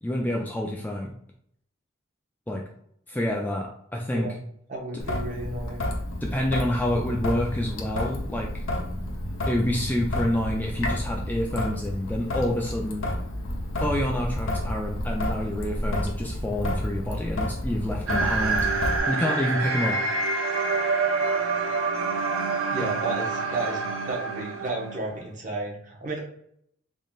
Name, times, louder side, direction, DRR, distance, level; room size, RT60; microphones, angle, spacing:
voice 1, 0.0-1.1 2.5-2.6 3.1-4.3 4.9-5.0 6.2-8.6 9.5-13.1 13.8-18.7 19.1-20.0, left 1 dB, 10° left, 0 dB, 0.3 m, -28 dB
voice 2, 4.7-5.8 22.7-26.2, right 2 dB, 40° right, -1 dB, 1.0 m, -32 dB
Traffic noise roadway noise / Drip / Trickle dribble, 5.0-19.0, left 1 dB, 70° left, 0.7 m, -30 dB
sound 1, 18.1-25.2, right 4 dB, 85° right, 0.6 m, -27 dB
3.8 x 3.7 x 2.3 m, 0.70 s
head